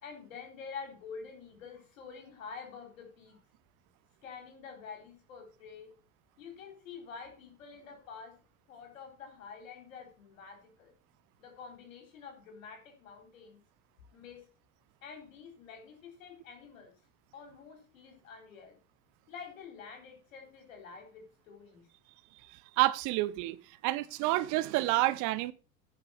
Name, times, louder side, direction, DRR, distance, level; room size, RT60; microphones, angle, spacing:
voice 1, 0.0-3.4 4.2-5.9 6.4-8.4 8.7-10.9 11.4-13.6 14.1-14.5 15.0-16.9 17.3-18.8 19.3-21.9, left 5 dB, 70° left, 3.5 m, -48 dB
voice 2, 22.5-23.6 23.8-25.5, right 17 dB, 45° right, 0.8 m, -29 dB
10.5 x 5.8 x 5.5 m
figure-of-eight pair, 70°, 41 cm